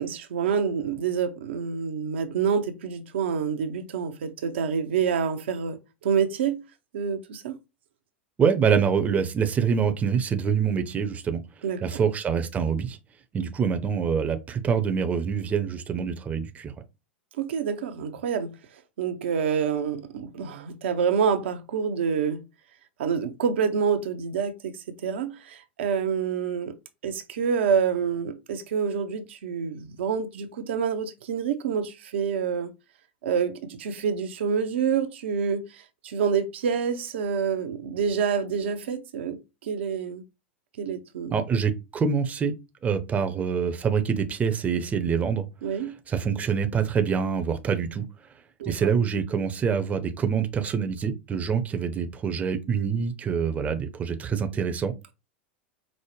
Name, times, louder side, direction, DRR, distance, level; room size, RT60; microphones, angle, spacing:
voice 1, 0.0-6.6 6.9-7.6 11.6-11.8 17.4-18.5 19.0-22.4 23.0-26.7 27.0-32.7 33.2-40.2 40.8-41.4 45.6-46.0 48.6-48.9, right 6 dB, 70° right, 0.6 m, -27 dB
voice 2, 8.4-11.4 11.8-13.0 13.3-16.7 41.3-42.5 42.8-45.5 46.1-48.0 48.7-55.1, right 6 dB, 25° right, 0.6 m, -25 dB
5.0 x 2.1 x 3.1 m
hypercardioid pair, 90°, 6 cm